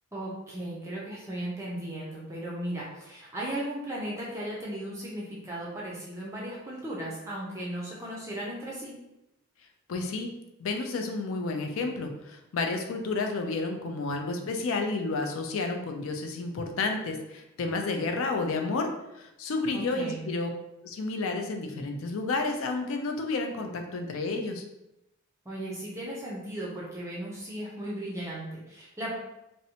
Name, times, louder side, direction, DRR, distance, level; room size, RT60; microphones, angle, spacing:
voice 1, 0.1-9.0 19.7-20.3 25.5-29.1, right 1 dB, 15° right, -5 dB, 0.4 m, -36 dB
voice 2, 9.9-10.3 10.6-18.9 19.2-20.5 20.8-24.6, left 3 dB, 70° left, 4 dB, 0.4 m, -31 dB
2.6 x 2.1 x 2.7 m, 0.89 s
head